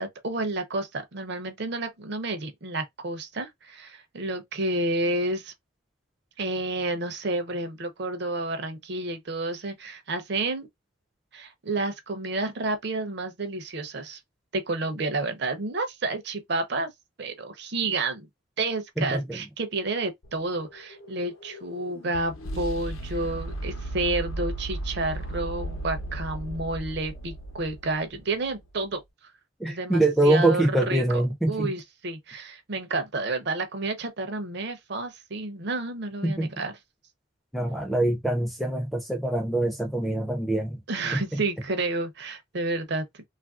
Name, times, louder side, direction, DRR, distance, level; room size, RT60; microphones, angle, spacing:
voice 1, 0.0-5.5 6.4-10.7 11.3-14.2 14.5-16.9 17.2-18.3 18.6-29.0 29.7-31.2 31.5-36.7 40.9-43.3, right 2 dB, 55° right, 0.6 m, -30 dB
voice 2, 19.0-19.4 29.6-31.7 36.2-36.5 37.5-40.8 41.3-41.4, right 1 dB, ahead, 0.4 m, -24 dB
sound 1, 20.2-28.3, right 1 dB, 90° left, 0.8 m, -36 dB
3.0 x 2.5 x 2.3 m
head